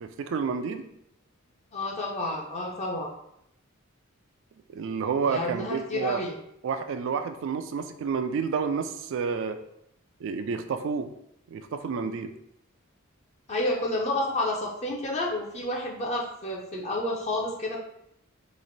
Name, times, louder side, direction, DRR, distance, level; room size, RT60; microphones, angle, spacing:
voice 1, 0.0-0.8 4.7-6.2 6.6-9.6 10.2-11.1 11.5-12.3, right 5 dB, 60° right, 9 dB, 0.3 m, -30 dB
voice 2, 1.7-3.1 5.3-6.3 13.5-17.8, left 1 dB, 30° left, -1 dB, 0.5 m, -30 dB
3.1 x 2.5 x 3.9 m, 0.77 s
head